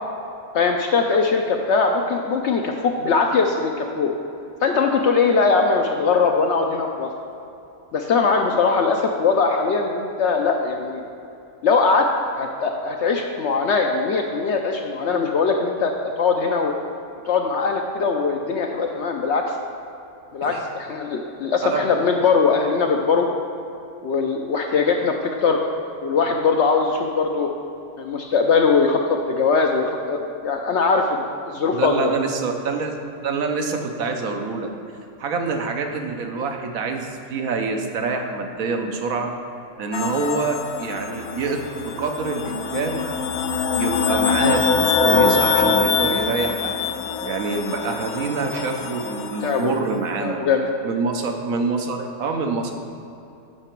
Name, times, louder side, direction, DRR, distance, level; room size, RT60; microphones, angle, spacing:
voice 1, 0.5-4.1 4.6-7.1 7.9-11.0 11.6-12.1 12.4-16.7 17.3-19.5 20.3-23.3 24.0-25.6 26.0-27.5 28.0-32.1 49.4-49.7 50.2-50.7, left 4 dB, 65° left, 3 dB, 0.7 m, -21 dB
voice 2, 31.7-34.7 35.2-39.3 39.8-43.0 43.7-46.9 47.2-50.4 50.8-52.7, right 4 dB, 70° right, 4 dB, 1.2 m, -26 dB
sound 1, 39.9-49.6, left 5 dB, 85° left, 1.1 m, -23 dB
8.9 x 5.7 x 4.5 m, 2.7 s
omnidirectional pair, 1.6 m